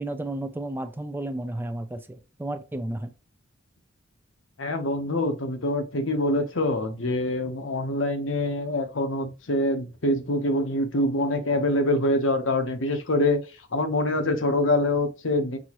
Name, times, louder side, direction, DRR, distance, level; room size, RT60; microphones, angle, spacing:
voice 1, 0.0-3.1, right 1 dB, 10° right, 0.4 m, -32 dB
voice 2, 4.6-13.4 13.7-15.6, left 1 dB, 80° left, 0.9 m, -25 dB
6.1 x 2.7 x 3.0 m
head